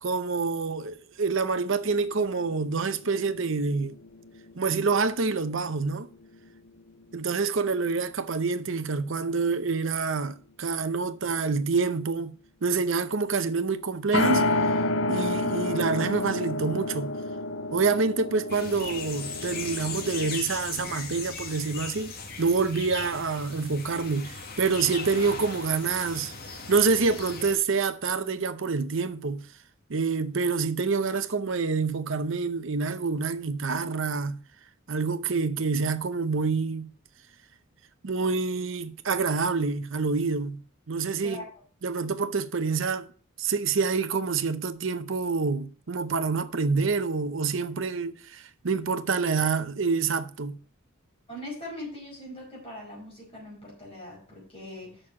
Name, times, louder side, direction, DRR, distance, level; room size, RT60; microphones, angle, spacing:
voice 1, 0.0-3.9 4.5-6.1 7.1-12.3 12.6-14.5 15.1-17.1 17.7-22.1 22.4-26.3 26.7-29.4 29.9-34.4 34.9-36.9 38.0-40.6 40.9-41.4 41.8-43.1 43.4-50.6, right 4 dB, 65° right, 0.8 m, -27 dB
sound 1, 1.8-5.6 5.9-6.0 14.1-20.4, left 2 dB, 65° left, 0.6 m, -30 dB
sound 2, 18.5-27.5, left 5 dB, 50° left, 1.6 m, -38 dB
voice 2, 51.3-55.0, left 1 dB, 30° left, 5.3 m, -41 dB
6.6 x 6.3 x 7.3 m
head